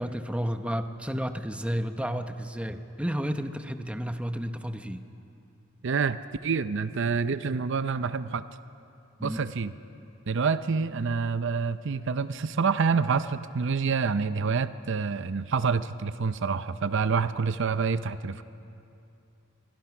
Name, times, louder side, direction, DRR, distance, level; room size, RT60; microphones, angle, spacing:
voice 1, 0.0-5.0 9.2-9.4, equal, 5° right, 7 dB, 0.8 m, -31 dB
voice 2, 5.8-8.4 9.2-9.7 10.3-18.4, right 5 dB, 65° right, 12 dB, 0.6 m, -27 dB
27.0 x 23.5 x 6.0 m, 2.7 s
head